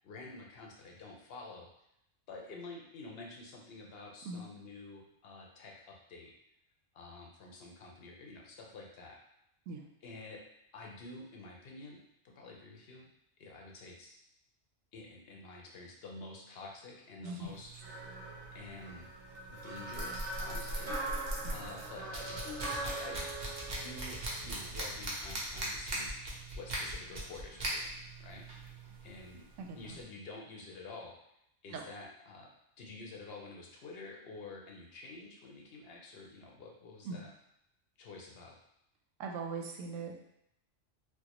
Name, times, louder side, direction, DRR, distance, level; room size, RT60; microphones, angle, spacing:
voice 1, 0.0-1.7 2.3-6.3 6.9-9.2 10.0-10.4 10.7-13.1 13.4-14.2 14.9-17.8 18.5-19.1 19.6-21.0 21.5-23.2 23.7-26.1 26.5-28.5 29.0-29.5 29.8-31.1 31.6-37.3 38.0-38.6, left 3 dB, 60° left, -1 dB, 0.8 m, -49 dB
voice 2, 17.2-17.6 21.4-21.6 29.7-30.0 31.7-31.8 37.0-37.2 39.2-40.1, right 4 dB, 85° right, 2 dB, 1.0 m, -40 dB
sound 1, 17.4-30.0, right 1 dB, 40° right, 0.8 m, -41 dB
sound 2, 17.8-24.9, right 2 dB, 70° right, 1.2 m, -42 dB
4.4 x 2.1 x 2.9 m, 0.79 s
omnidirectional pair, 1.3 m